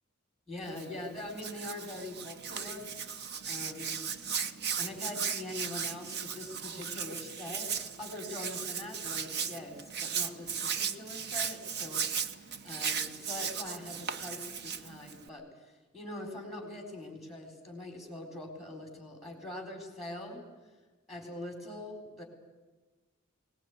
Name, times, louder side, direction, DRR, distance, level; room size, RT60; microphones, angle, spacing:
voice 1, 0.5-2.9 3.4-4.0 4.8-15.4 15.9-20.4 21.1-22.2, left 1 dB, ahead, 3 dB, 4.0 m, -43 dB
Hands, 0.6-15.3, right 7 dB, 50° right, 1.0 m, -37 dB
21.0 x 19.0 x 9.5 m, 1.2 s
head